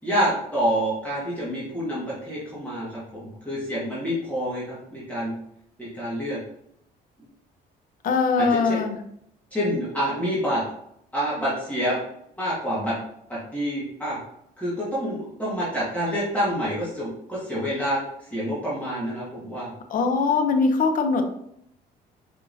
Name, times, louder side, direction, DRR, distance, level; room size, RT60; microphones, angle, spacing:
voice 1, 0.0-2.9 3.1-5.3 5.8-6.4 8.4-8.8 9.5-10.6 11.1-12.0 12.4-13.0 13.3-14.2 14.6-19.7, equal, 10° left, -9 dB, 1.8 m, -27 dB
voice 2, 8.0-9.0 19.9-21.2, left 4 dB, 55° left, 6 dB, 0.7 m, -21 dB
5.5 x 3.5 x 2.7 m, 0.75 s
cardioid pair, 110°, 17 cm